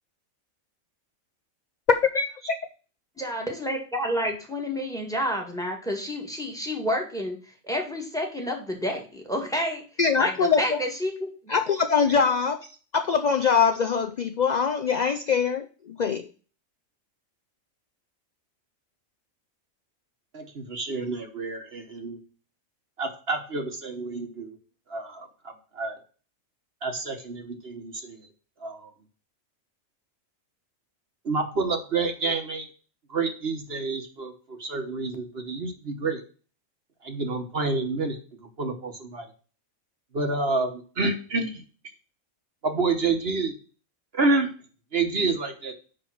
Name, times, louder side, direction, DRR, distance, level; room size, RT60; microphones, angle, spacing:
voice 1, 1.9-2.6 10.0-10.8 11.5-12.7 12.9-16.3, left 6 dB, 55° left, 8 dB, 0.5 m, -23 dB
voice 2, 3.2-7.4 7.6-9.8 10.2-11.5, equal, 5° left, 2 dB, 1.7 m, -29 dB
voice 3, 20.3-22.2 23.0-24.6 24.9-26.0 26.8-28.2 28.6-28.9 31.2-32.7 33.1-36.2 37.0-38.2 38.6-39.2 40.1-41.6 42.6-43.5 44.1-44.5 44.9-45.7, right 3 dB, 50° right, 5 dB, 1.3 m, -28 dB
10.0 x 3.7 x 6.0 m, 0.38 s
omnidirectional pair, 1.4 m